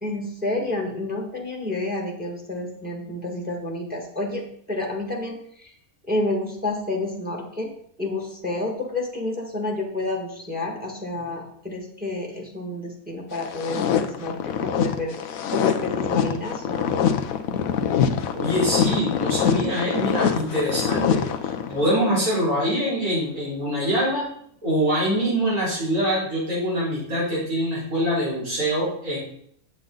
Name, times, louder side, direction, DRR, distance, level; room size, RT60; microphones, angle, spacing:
voice 1, 0.0-4.4 4.7-5.7 6.1-7.7 8.0-15.1 15.5-17.1, left 2 dB, 5° right, 0 dB, 1.7 m, -29 dB
sound 1, 13.3-21.9, left 8 dB, 70° left, 1.1 m, -24 dB
voice 2, 18.3-24.2 24.6-29.2, equal, 80° right, -9 dB, 5.2 m, -24 dB
8.5 x 8.1 x 3.9 m, 0.65 s
omnidirectional pair, 1.5 m